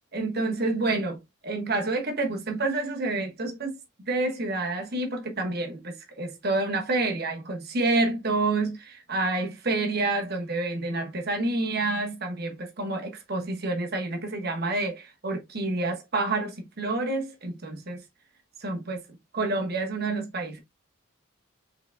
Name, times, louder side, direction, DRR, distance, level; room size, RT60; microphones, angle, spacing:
voice 1, 0.1-1.2 1.4-18.0 18.6-19.0 19.3-20.6, right 2 dB, 50° right, 1.2 m, -28 dB
5.6 x 4.0 x 2.2 m
head